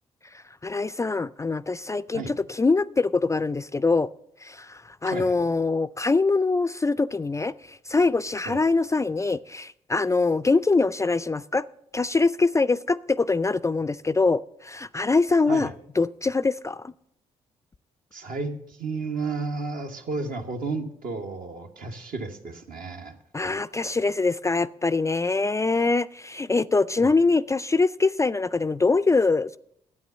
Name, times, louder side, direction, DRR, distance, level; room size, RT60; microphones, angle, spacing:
voice 1, 0.3-4.1 4.4-11.6 11.9-15.7 16.0-16.9 23.3-29.6, left 3 dB, 20° left, 14 dB, 0.3 m, -23 dB
voice 2, 5.1-5.4 8.4-8.6 15.5-15.7 18.1-23.1 27.0-27.1, right 3 dB, 65° right, 3 dB, 1.3 m, -32 dB
9.5 x 8.5 x 6.7 m, 0.71 s
hypercardioid pair, 50°, 16 cm